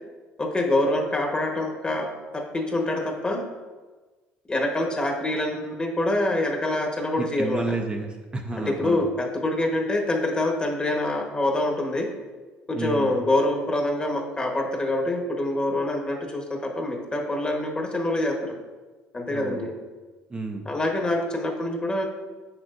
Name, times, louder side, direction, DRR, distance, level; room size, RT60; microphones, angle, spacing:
voice 1, 0.4-3.4 4.5-7.7 8.5-12.1 12.7-18.5 19.1-19.7 20.6-22.0, left 1 dB, 20° left, 1 dB, 1.2 m, -25 dB
voice 2, 7.2-9.0 12.7-13.1 19.3-19.7 20.3-20.7, right 3 dB, 25° right, 2 dB, 0.6 m, -31 dB
7.2 x 6.1 x 2.6 m, 1.3 s
supercardioid pair, 85°, 4 cm